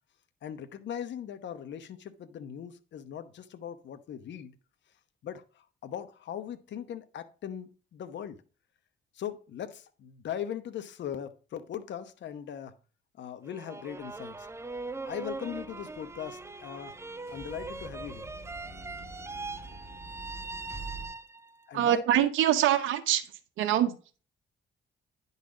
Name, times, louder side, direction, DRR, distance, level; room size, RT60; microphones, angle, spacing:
voice 1, 0.4-4.6 5.2-8.4 9.1-12.7 13.2-14.5 15.0-17.0 17.3-18.3 21.7-22.0, left 9 dB, 65° left, 0.9 m, -39 dB
sound 1, 13.4-21.6, right 3 dB, 15° right, 0.5 m, -41 dB
sound 2, 14.3-21.1, right 2 dB, 10° left, 3.3 m, -48 dB
voice 2, 21.7-23.2 23.6-24.0, right 11 dB, 85° right, 0.9 m, -24 dB
10.0 x 4.1 x 4.9 m
cardioid pair, 90°, 20 cm